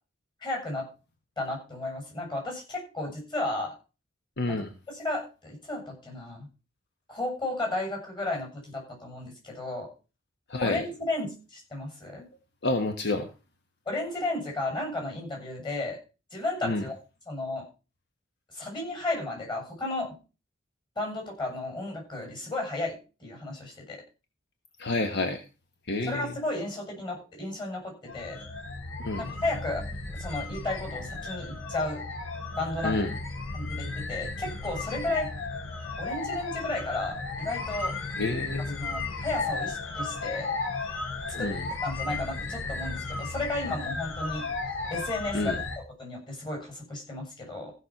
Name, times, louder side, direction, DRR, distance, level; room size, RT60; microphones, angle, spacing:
voice 1, 0.4-0.9 1.4-3.7 4.5-4.6 4.9-6.5 7.1-9.9 10.6-12.2 13.9-16.0 16.3-17.0 17.3-17.7 18.5-20.2 21.0-24.0 26.0-28.4 29.2-29.9 30.1-32.0 32.6-33.1 33.5-35.3 36.0-37.9 38.8-40.5 41.4-41.5 41.8-44.4 44.9-45.6 46.0-47.7, left 2 dB, 25° left, 1 dB, 7.4 m, -33 dB
voice 2, 4.4-4.7 10.5-10.8 12.6-13.3 16.6-16.8 24.8-25.4 25.9-26.3 29.0-29.3 32.8-33.1 38.2-38.8 41.3-41.6 45.3-45.6, left 2 dB, 60° left, 6 dB, 1.3 m, -29 dB
sound 1, 28.1-45.8, left 3 dB, 90° left, 3.9 m, -34 dB
15.0 x 6.3 x 5.8 m, 0.33 s
head